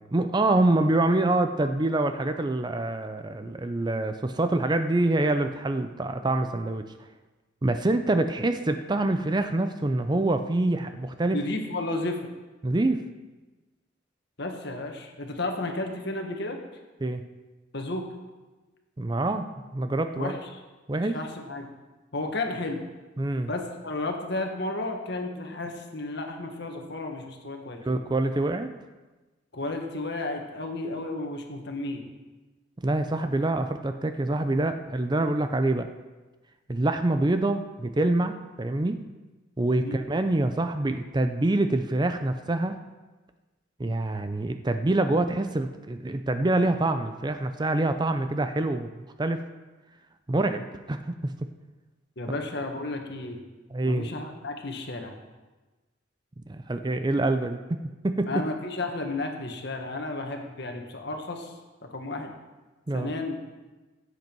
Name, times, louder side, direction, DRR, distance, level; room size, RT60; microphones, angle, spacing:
voice 1, 0.1-6.8 7.6-11.4 12.6-13.0 17.0-17.2 19.0-20.4 20.9-21.2 23.2-23.5 27.9-28.7 32.8-35.9 36.7-39.0 39.6-42.8 43.8-48.9 49.2-49.4 50.3-51.5 52.3-52.4 53.7-54.1 56.5-57.8 58.0-58.4 62.9-63.1, right 2 dB, 20° right, 8 dB, 0.5 m, -26 dB
voice 2, 11.3-12.2 14.4-16.6 17.7-18.1 20.2-20.4 21.1-21.7 22.1-22.8 23.5-27.9 29.5-32.0 39.8-40.0 52.2-53.4 53.8-55.1 58.3-61.5 61.9-62.3 62.9-63.4, left 2 dB, 60° left, 3 dB, 1.5 m, -32 dB
16.0 x 8.1 x 4.6 m, 1.2 s
head